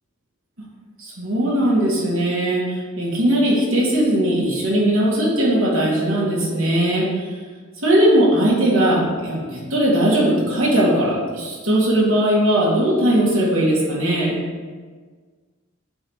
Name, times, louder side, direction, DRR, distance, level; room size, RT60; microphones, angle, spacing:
voice 1, 1.0-7.2 7.8-14.3, right 1 dB, 75° right, -5 dB, 1.8 m, -19 dB
8.6 x 2.9 x 4.6 m, 1.5 s
head